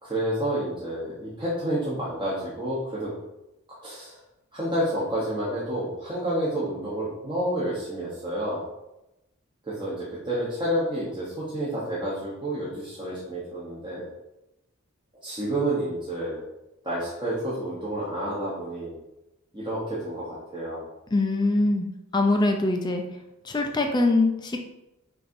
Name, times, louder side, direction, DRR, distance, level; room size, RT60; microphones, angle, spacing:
voice 1, 0.0-3.1 3.8-4.2 4.5-8.6 9.6-14.1 15.2-16.4 16.8-18.9 19.5-20.8, right 1 dB, 20° right, -9 dB, 0.9 m, -29 dB
voice 2, 21.1-21.9 22.1-23.0 23.5-24.6, left 2 dB, 20° left, 3 dB, 0.4 m, -23 dB
6.0 x 2.7 x 2.6 m, 0.92 s
head